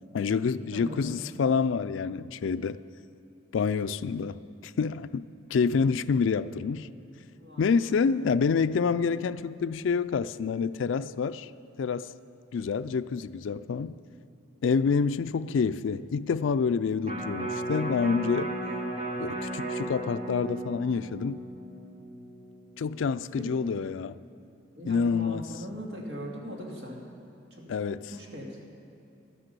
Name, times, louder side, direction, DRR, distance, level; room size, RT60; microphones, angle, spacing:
voice 1, 0.1-2.8 3.5-5.2 5.5-6.9 7.6-11.5 11.8-12.1 12.5-14.0 14.6-18.5 19.2-21.4 22.8-24.2 24.9-25.5 27.7-28.1, left 5 dB, 80° left, 14 dB, 0.4 m, -27 dB
voice 2, 0.7-1.2 7.3-7.7 8.2-8.3 23.4-23.5 24.7-27.0 27.5-27.6 28.1-28.7, equal, 60° right, -2 dB, 2.3 m, -40 dB
Electric guitar, 17.0-23.3 23.7-23.8, right 1 dB, 35° right, 1.8 m, -35 dB
12.0 x 9.8 x 6.8 m, 2.7 s
head